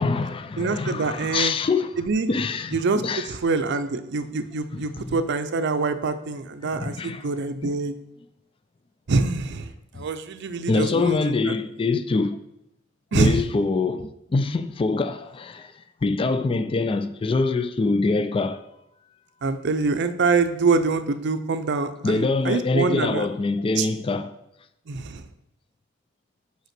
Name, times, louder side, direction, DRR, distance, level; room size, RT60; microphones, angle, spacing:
voice 1, 0.0-1.9 2.3-3.3 5.0-5.1 6.6-7.2 7.6-7.7 9.9-10.1 10.7-12.4 13.1-15.7 16.0-18.6 22.0-24.3, left 3 dB, 25° left, 0.3 m, -24 dB
voice 2, 0.6-1.5 2.0-2.3 2.7-7.9 9.1-11.5 13.1-13.4 19.4-23.3 23.8-23.9 24.9-25.2, right 4 dB, 60° right, 0.5 m, -25 dB
5.5 x 4.9 x 5.9 m
head